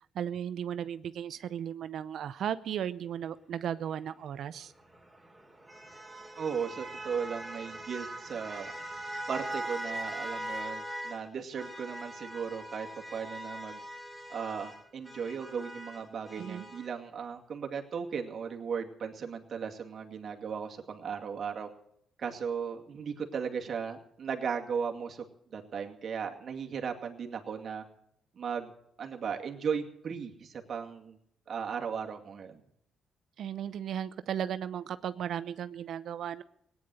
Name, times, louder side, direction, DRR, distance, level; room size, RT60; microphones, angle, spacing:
voice 1, 0.1-4.7 16.4-16.7 33.4-36.4, right 9 dB, 70° right, 14 dB, 0.6 m, -35 dB
sound 1, 4.6-11.2 11.6-16.9, right 1 dB, 5° right, 3.3 m, -41 dB
voice 2, 6.4-8.7 9.3-13.8 14.3-21.7 22.2-25.2 25.5-27.9 28.4-28.7 29.0-31.2 31.5-32.6, right 6 dB, 50° right, 2 dB, 2.3 m, -36 dB
17.5 x 9.8 x 7.8 m, 0.73 s
cardioid pair, 90°, 0 cm